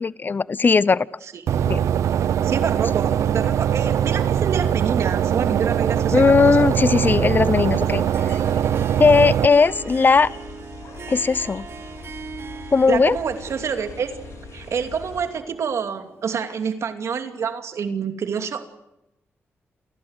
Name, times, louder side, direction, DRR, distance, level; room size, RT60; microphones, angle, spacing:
voice 1, 0.0-1.1 1.7-1.8 6.1-8.0 9.0-10.3 11.1-11.7 12.7-13.2, left 4 dB, 40° left, 19 dB, 0.8 m, -17 dB
sound 1, 1.5-9.5, right 9 dB, 90° right, 0.8 m, -21 dB
voice 2, 2.4-6.6 12.9-14.1 14.5-18.7, right 6 dB, 70° right, 7 dB, 2.7 m, -27 dB
sound 2, 7.4-15.3, left 6 dB, 80° left, 3.8 m, -42 dB
Harp, 8.1-16.6, right 6 dB, 55° right, 1.1 m, -40 dB
29.0 x 17.5 x 8.2 m, 0.91 s
cardioid pair, 75°, 5 cm